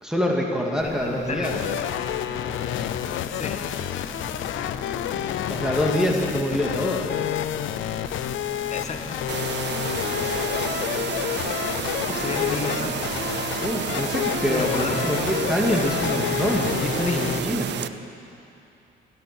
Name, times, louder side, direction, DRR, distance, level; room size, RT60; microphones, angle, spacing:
voice 1, 0.0-1.6 5.5-7.1 13.6-17.7, equal, 5° right, -1 dB, 2.2 m, -25 dB
voice 2, 0.8-1.5 3.2-3.6 8.7-9.2 12.0-13.0 14.5-15.0 17.1-17.2, left 5 dB, 35° left, 5 dB, 1.4 m, -31 dB
sound 1, 0.8-17.6, left 1 dB, 20° left, 3.8 m, -39 dB
sound 2, 1.4-17.4, left 12 dB, 80° left, 0.5 m, -29 dB
sound 3, 9.3-17.9, right 10 dB, 60° right, 0.6 m, -30 dB
17.5 x 12.5 x 6.1 m, 2.7 s
cardioid pair, 90°, 20 cm